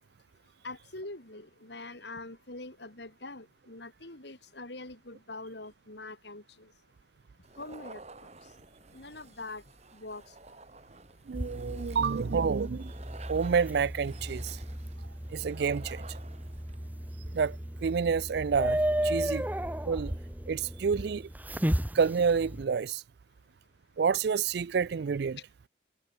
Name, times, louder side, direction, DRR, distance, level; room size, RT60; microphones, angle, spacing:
voice 1, 0.6-6.7 7.6-8.5 8.9-9.6 9.9-10.4 11.7-11.9, left 2 dB, 65° left, 4.0 m, -44 dB
sound 1, 7.4-16.8, right 3 dB, 35° right, 6.6 m, -52 dB
sound 2, 11.3-22.6, right 1 dB, 10° right, 1.0 m, -34 dB
voice 2, 11.3-12.9 13.3-14.6 15.3-16.1 17.3-19.5 19.9-20.2 20.5-21.3 21.9-23.0 24.0-25.4, right 6 dB, 60° right, 0.4 m, -29 dB
head